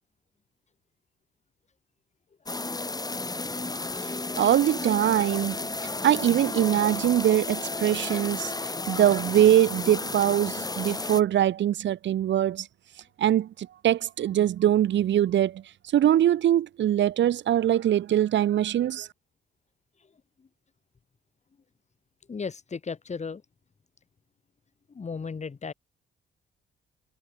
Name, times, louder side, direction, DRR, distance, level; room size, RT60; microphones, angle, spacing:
sound 1, 2.5-11.2, left 3 dB, 20° left, 5.1 m, -33 dB
voice 1, 4.0-5.6 6.0-12.7 13.2-15.6 15.9-19.1, right 11 dB, 65° right, 1.3 m, -23 dB
voice 2, 22.3-23.4 24.9-25.7, left 5 dB, 35° left, 4.6 m, -35 dB
cardioid pair, 90°, 20 cm